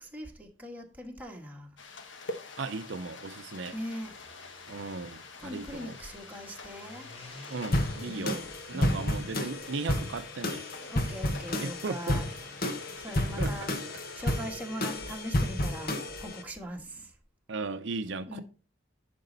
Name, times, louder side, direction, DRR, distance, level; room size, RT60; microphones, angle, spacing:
voice 1, 0.0-1.7 3.7-4.2 5.4-7.1 8.1-9.1 10.8-12.3 12.7-17.1 18.3-18.4, equal, 10° right, 1.5 m, -41 dB
sound 1, 1.8-14.3, left 3 dB, 70° left, 1.1 m, -47 dB
voice 2, 2.6-3.8 4.7-6.0 7.5-10.6 11.6-12.2 13.1-13.5 17.5-18.4, right 3 dB, 70° right, 0.6 m, -37 dB
sound 2, 3.9-10.2, left 2 dB, 30° left, 1.7 m, -52 dB
sound 3, 7.7-16.4, left 1 dB, 50° left, 1.3 m, -31 dB
10.5 x 5.3 x 4.0 m
head